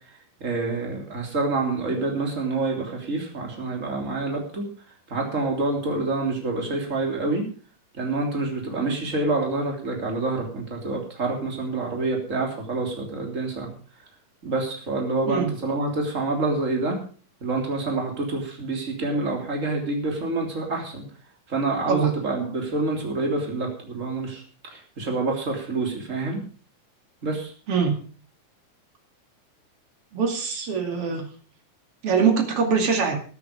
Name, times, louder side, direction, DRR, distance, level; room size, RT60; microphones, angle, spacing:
voice 1, 0.4-4.6 5.1-7.4 7.9-13.7 14.4-17.0 17.4-21.0 21.5-26.4 27.2-27.5, right 3 dB, 20° right, 1 dB, 3.3 m, -27 dB
voice 2, 30.1-31.3 32.0-33.2, right 6 dB, 45° right, 4 dB, 3.0 m, -23 dB
14.0 x 9.5 x 5.2 m, 0.40 s
omnidirectional pair, 3.9 m